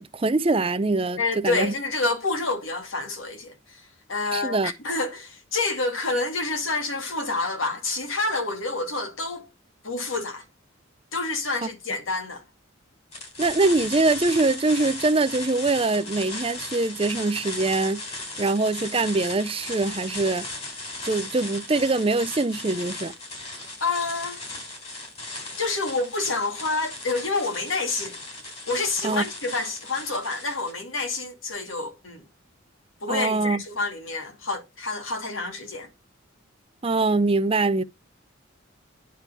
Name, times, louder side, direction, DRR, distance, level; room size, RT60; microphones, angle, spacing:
voice 1, 0.0-1.7 4.3-4.7 11.6-11.7 13.4-18.0 18.4-20.4 21.0-23.1 29.0-29.2 33.1-33.6 36.8-37.8, right 3 dB, 25° right, 0.5 m, -23 dB
voice 2, 1.2-3.8 4.1-9.5 9.8-10.4 11.1-12.4 23.8-24.4 25.6-28.2 28.7-32.2 33.0-35.9, left 3 dB, 85° left, 2.5 m, -28 dB
sound 1, 13.1-30.8, left 2 dB, 30° left, 3.6 m, -37 dB
9.9 x 4.8 x 7.0 m
head